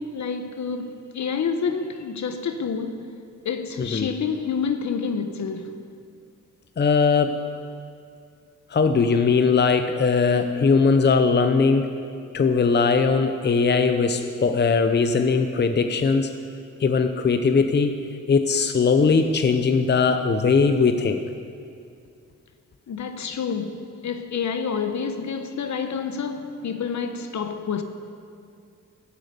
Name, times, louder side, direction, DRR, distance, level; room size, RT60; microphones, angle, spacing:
voice 1, 0.0-3.1 3.4-5.7 22.9-27.8, left 6 dB, 65° left, 1.1 m, -28 dB
voice 2, 3.8-4.1 6.8-7.4 8.7-11.9 12.3-16.3 16.8-21.2, left 5 dB, 35° left, 0.7 m, -20 dB
13.0 x 8.2 x 8.2 m
cardioid pair, 80°, 31 cm